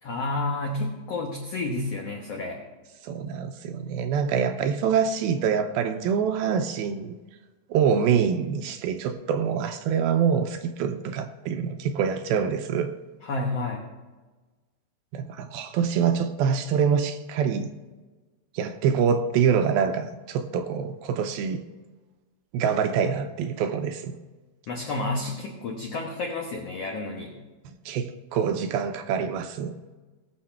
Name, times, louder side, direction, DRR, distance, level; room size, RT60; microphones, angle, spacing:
voice 1, 0.0-2.6 13.2-13.8 24.7-27.3, left 2 dB, 80° left, 1 dB, 1.4 m, -30 dB
voice 2, 3.0-7.2 7.7-12.9 15.1-17.7 18.5-21.6 22.5-24.1 27.9-29.7, right 7 dB, 80° right, 8 dB, 2.3 m, -25 dB
19.5 x 6.6 x 4.4 m, 1.2 s
omnidirectional pair, 4.6 m